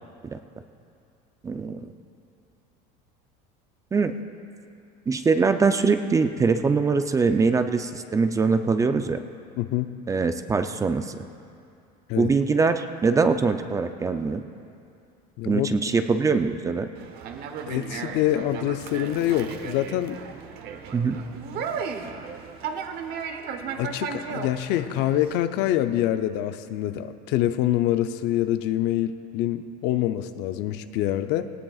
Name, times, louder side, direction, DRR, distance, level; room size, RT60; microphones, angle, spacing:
voice 1, 1.4-1.9 3.9-4.2 5.1-9.2 10.1-11.2 12.2-14.4 15.4-16.9 20.9-21.2, right 4 dB, 15° right, 8 dB, 0.5 m, -23 dB
voice 2, 9.6-9.9 12.1-12.3 15.4-15.7 17.7-20.2 21.6-21.7 23.8-31.5, left 12 dB, 60° left, 10 dB, 0.6 m, -25 dB
Conversation, 16.9-25.3, right 6 dB, 55° right, 1.0 m, -35 dB
18.0 x 18.0 x 2.4 m, 2.5 s
cardioid pair, 135°, 19 cm